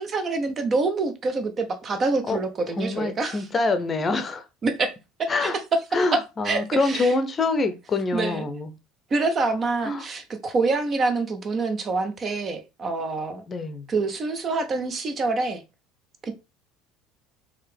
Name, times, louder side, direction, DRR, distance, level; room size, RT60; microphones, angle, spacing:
voice 1, 0.0-3.4 4.6-4.9 5.2-5.5 6.1-7.1 8.1-8.5 9.1-13.4 13.9-15.6 16.2-16.3, right 3 dB, 35° right, 0.8 m, -26 dB
voice 2, 2.8-4.4 5.3-5.6 5.9-8.7 9.8-10.1 13.5-13.9, left 3 dB, 30° left, 0.7 m, -25 dB
4.6 x 2.9 x 3.3 m
figure-of-eight pair, 65°, 0 cm